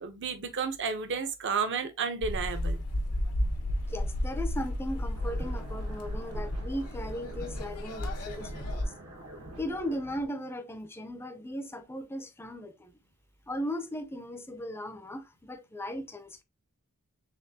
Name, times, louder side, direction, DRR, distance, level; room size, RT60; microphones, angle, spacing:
voice 1, 0.0-2.8, right 5 dB, 55° right, 0.7 m, -32 dB
sound 1, 2.2-8.8, left 1 dB, 85° left, 0.9 m, -33 dB
voice 2, 3.9-8.9 9.6-12.9 13.5-16.4, equal, 10° left, 0.5 m, -37 dB
sound 2, 5.1-10.3, right 2 dB, 80° right, 1.4 m, -47 dB
4.2 x 3.5 x 2.7 m
head